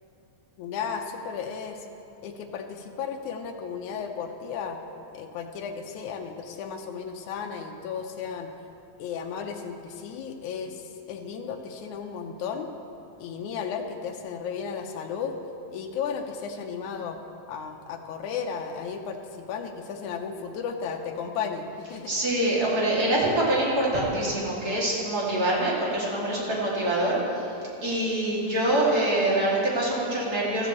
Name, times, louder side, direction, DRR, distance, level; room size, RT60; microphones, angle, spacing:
voice 1, 0.6-1.9 2.2-4.8 5.1-8.5 9.0-12.7 13.2-15.4 15.7-17.2 17.5-19.2 19.5-22.1, left 6 dB, 85° left, 3 dB, 2.2 m, -34 dB
voice 2, 22.1-27.5 27.8-30.7, right 1 dB, 30° right, -6 dB, 2.9 m, -25 dB
15.5 x 14.0 x 3.2 m, 2.7 s
omnidirectional pair, 3.4 m